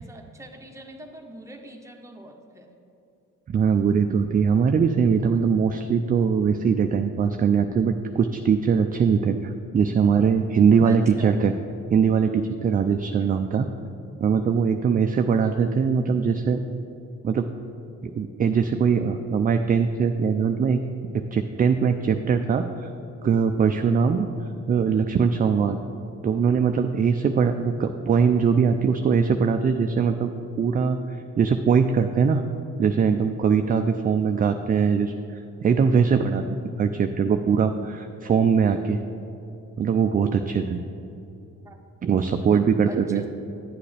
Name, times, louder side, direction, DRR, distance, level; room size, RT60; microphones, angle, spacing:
voice 1, 0.0-2.7 10.8-11.4 13.2-13.6 41.6-41.8 42.5-43.3, right 1 dB, 10° right, 2 dB, 0.9 m, -42 dB
voice 2, 3.5-11.5 11.9-13.7 14.2-16.6 17.2-17.5 18.0-20.8 21.3-22.9 23.2-24.3 24.7-25.8 26.2-30.3 30.6-32.4 32.8-35.1 35.6-36.4 36.8-39.0 39.8-40.8 42.0-43.2, right 6 dB, 30° right, 6 dB, 0.3 m, -21 dB
9.5 x 8.3 x 3.3 m, 2.8 s
cardioid pair, 90°, 30 cm